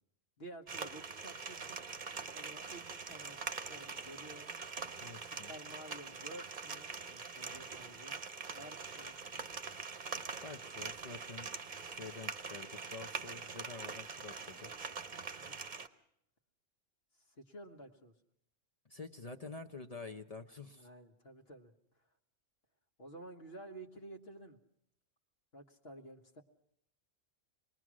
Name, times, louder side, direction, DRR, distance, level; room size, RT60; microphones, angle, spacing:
voice 1, 0.4-1.8 2.3-4.6 5.4-8.2 8.5-9.4 15.4-15.6 17.2-18.1 20.8-21.7 22.0-22.1 23.0-24.6 25.5-26.4, right 1 dB, 55° left, 3 dB, 1.6 m, -52 dB
sound 1, 0.7-15.9, right 5 dB, 40° right, 1.0 m, -44 dB
voice 2, 5.0-5.5 10.4-11.5 11.9-14.7 18.8-20.9, left 4 dB, 35° left, 5 dB, 0.9 m, -48 dB
26.0 x 20.0 x 6.2 m, 0.76 s
omnidirectional pair, 1.3 m